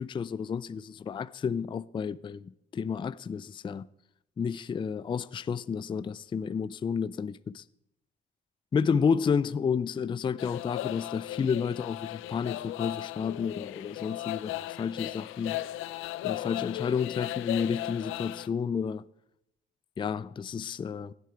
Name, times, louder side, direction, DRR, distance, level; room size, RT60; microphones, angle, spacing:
voice 1, 0.0-3.9 4.4-7.6 8.7-15.6 16.2-19.0 20.0-21.1, left 6 dB, 25° left, 0.3 m, -31 dB
sound 1, 10.4-18.5, left 15 dB, 90° left, 0.4 m, -36 dB
16.0 x 8.2 x 4.5 m
cardioid pair, 90°, 20 cm